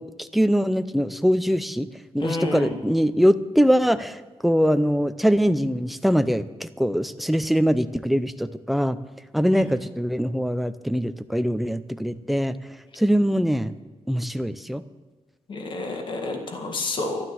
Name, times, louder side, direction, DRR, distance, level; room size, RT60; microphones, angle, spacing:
voice 1, 0.0-1.9 2.1-9.0 9.3-12.6 13.0-13.7 14.1-14.8, equal, ahead, 11 dB, 0.6 m, -22 dB
voice 2, 2.2-2.7 9.5-9.6 15.5-17.2, left 2 dB, 45° left, 4 dB, 1.9 m, -29 dB
12.5 x 12.0 x 7.8 m, 1.3 s
wide cardioid pair, 170°, 11 cm